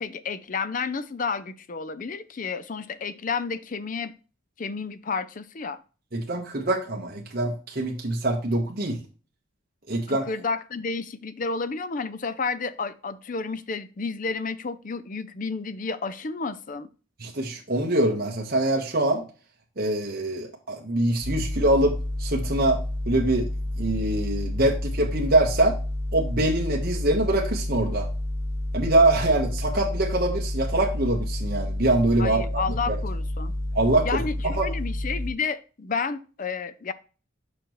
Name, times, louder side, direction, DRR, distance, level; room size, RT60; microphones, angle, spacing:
voice 1, 0.0-4.1 4.6-5.8 10.1-16.9 32.2-33.6 34.0-36.9, left 4 dB, 40° left, 0.5 m, -31 dB
voice 2, 6.1-9.0 9.9-10.2 17.2-19.2 19.8-22.8 23.1-23.5 23.8-25.8 26.1-28.1 28.7-32.4 32.9-33.0 33.7-34.7, right 2 dB, 45° right, 1.1 m, -24 dB
sound 1, 21.2-35.3, left 1 dB, 65° left, 1.7 m, -30 dB
6.9 x 5.3 x 3.0 m
head